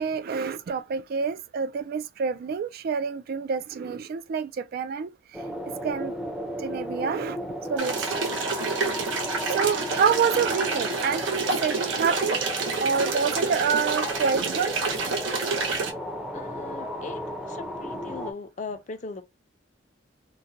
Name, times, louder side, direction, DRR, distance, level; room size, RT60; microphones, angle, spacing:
voice 1, 0.0-5.1 5.8-6.1 6.6-7.4 7.7-8.7 9.5-12.4 12.8-14.7 15.0-15.1, right 6 dB, 55° right, 0.3 m, -27 dB
sound 1, 5.3-18.3, equal, 5° right, 0.6 m, -34 dB
sound 2, 7.8-15.9, right 4 dB, 90° right, 0.8 m, -28 dB
voice 2, 16.3-19.2, left 4 dB, 40° left, 0.5 m, -39 dB
3.8 x 2.1 x 2.6 m
head